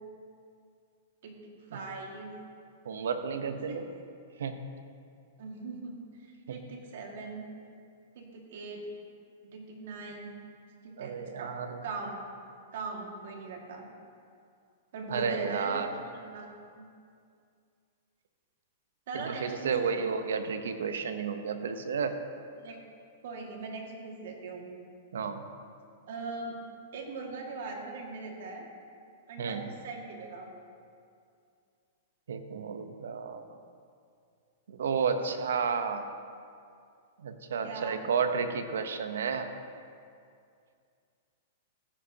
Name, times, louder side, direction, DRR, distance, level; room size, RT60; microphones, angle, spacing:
voice 1, 1.2-2.4 3.7-3.8 5.4-7.5 8.2-8.9 9.4-10.3 10.8-11.5 11.8-12.2 12.7-13.9 14.9-16.9 19.1-20.2 22.6-22.8 23.2-24.7 26.1-26.6 26.9-28.7 29.3-30.5 37.6-38.0, right 3 dB, 70° right, 1 dB, 2.0 m, -40 dB
voice 2, 2.8-3.9 4.4-4.7 6.5-6.6 11.0-11.8 15.1-15.9 19.1-22.2 25.1-25.4 29.4-29.7 32.3-33.6 34.7-36.1 37.2-39.5, right 6 dB, 85° right, 8 dB, 0.8 m, -32 dB
15.0 x 10.0 x 2.9 m, 2.4 s
hypercardioid pair, 145°, 0 cm